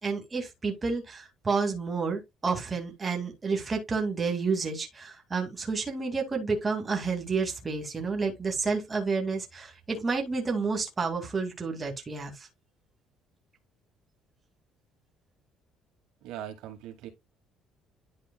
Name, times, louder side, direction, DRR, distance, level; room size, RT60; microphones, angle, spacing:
voice 1, 0.0-12.5, right 4 dB, 20° right, 2.3 m, -30 dB
voice 2, 16.2-17.1, right 11 dB, 90° right, 2.4 m, -40 dB
11.0 x 4.3 x 2.3 m
cardioid pair, 120°, 0 cm